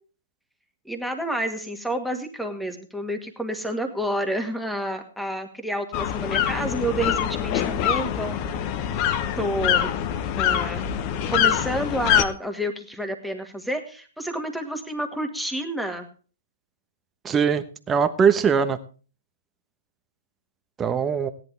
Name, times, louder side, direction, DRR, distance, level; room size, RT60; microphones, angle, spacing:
voice 1, 0.9-9.0 9.4-9.9 10.4-10.9 11.3-16.1, right 1 dB, ahead, 6 dB, 2.0 m, -29 dB
sound 1, 5.9-12.2, left 10 dB, 35° left, 1.2 m, -24 dB
voice 2, 17.2-18.8 20.8-21.3, right 6 dB, 15° right, 9 dB, 1.1 m, -21 dB
16.5 x 11.0 x 3.4 m, 0.37 s
figure-of-eight pair, 120°, 0 cm